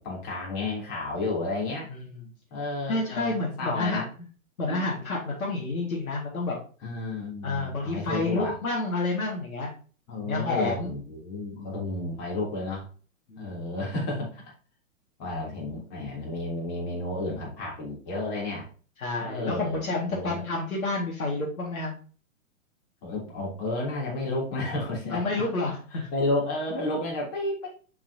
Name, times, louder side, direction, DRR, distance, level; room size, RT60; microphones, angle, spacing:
voice 1, 0.0-1.9 2.5-4.0 4.7-4.8 6.8-8.6 10.1-12.9 13.4-14.4 15.2-18.7 19.2-19.8 20.1-20.4 23.0-25.4 25.9-27.7, left 2 dB, 35° left, -2 dB, 3.1 m, -31 dB
voice 2, 2.9-4.0 4.6-6.6 7.4-9.7 10.2-10.9 13.3-13.6 19.0-21.9 25.1-26.1, left 2 dB, 80° left, -3 dB, 2.1 m, -29 dB
7.0 x 4.7 x 2.8 m, 0.39 s
hypercardioid pair, 125°, 41 cm